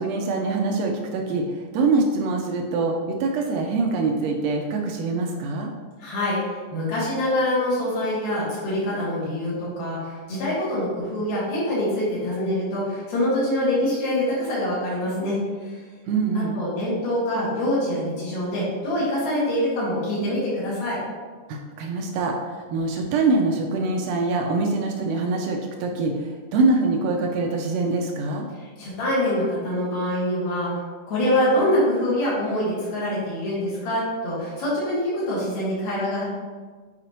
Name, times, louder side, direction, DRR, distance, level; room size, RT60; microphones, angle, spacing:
voice 1, 0.0-5.7 16.1-16.6 21.5-28.5, right 3 dB, 85° right, 1 dB, 1.5 m, -24 dB
voice 2, 6.0-15.8 16.5-21.0 28.5-30.7 31.1-36.2, left 1 dB, 85° left, -9 dB, 3.5 m, -25 dB
8.6 x 4.9 x 3.0 m, 1.5 s
omnidirectional pair, 3.7 m